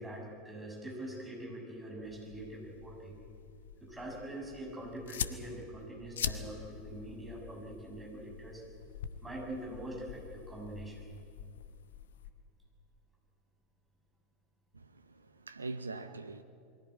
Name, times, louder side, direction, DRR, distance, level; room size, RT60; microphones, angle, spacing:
voice 1, 0.0-3.2 3.8-8.6 9.2-11.0, right 1 dB, 10° right, 7.3 m, -44 dB
sound 1, 2.0-12.3, left 8 dB, 70° left, 1.0 m, -44 dB
voice 2, 14.7-16.4, right 3 dB, 85° right, 0.8 m, -43 dB
22.0 x 16.5 x 8.8 m
figure-of-eight pair, 85°, 0 cm